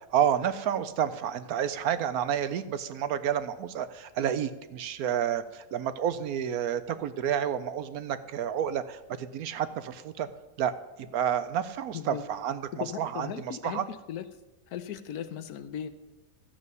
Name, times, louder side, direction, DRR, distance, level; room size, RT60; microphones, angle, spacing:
voice 1, 0.1-10.3 10.6-10.7 11.0-12.6 13.0-13.9, right 9 dB, 70° right, 12 dB, 1.1 m, -30 dB
voice 2, 11.9-12.3 12.8-14.3 14.7-15.9, left 9 dB, 75° left, 12 dB, 1.2 m, -37 dB
13.0 x 5.4 x 8.1 m, 1.1 s
omnidirectional pair, 1.7 m